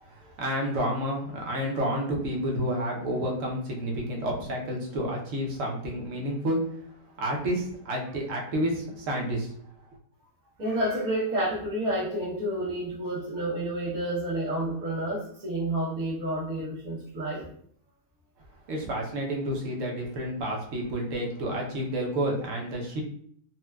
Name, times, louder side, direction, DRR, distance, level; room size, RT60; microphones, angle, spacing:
voice 1, 0.0-6.6 7.2-9.5 18.7-23.0, equal, 65° right, 0 dB, 1.1 m, -30 dB
voice 2, 10.6-17.4, right 1 dB, 85° right, -10 dB, 1.5 m, -30 dB
4.3 x 2.2 x 2.2 m, 0.63 s
omnidirectional pair, 1.5 m